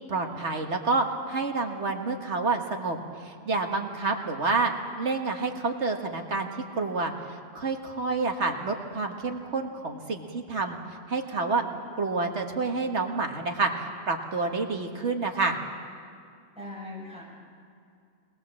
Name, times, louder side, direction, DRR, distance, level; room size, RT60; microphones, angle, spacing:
voice 1, 0.1-4.7 5.0-6.5 6.7-10.8 11.1-11.6 12.0-15.6, right 3 dB, 60° right, 3 dB, 1.8 m, -28 dB
voice 2, 16.6-17.2, left 2 dB, 5° right, -5 dB, 7.7 m, -40 dB
22.5 x 20.0 x 7.5 m, 2.3 s
omnidirectional pair, 1.3 m